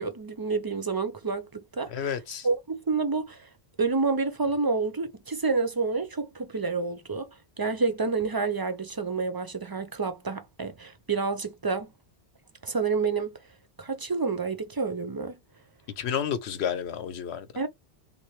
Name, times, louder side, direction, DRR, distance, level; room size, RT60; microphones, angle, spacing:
voice 1, 0.0-2.1 2.4-3.5 3.8-7.3 7.6-11.9 12.6-13.4 13.8-15.4 17.6-17.7, right 4 dB, 35° right, 0.3 m, -29 dB
voice 2, 1.9-2.5 16.0-17.5, left 8 dB, 85° left, 1.0 m, -31 dB
3.6 x 2.7 x 3.1 m
omnidirectional pair, 1.1 m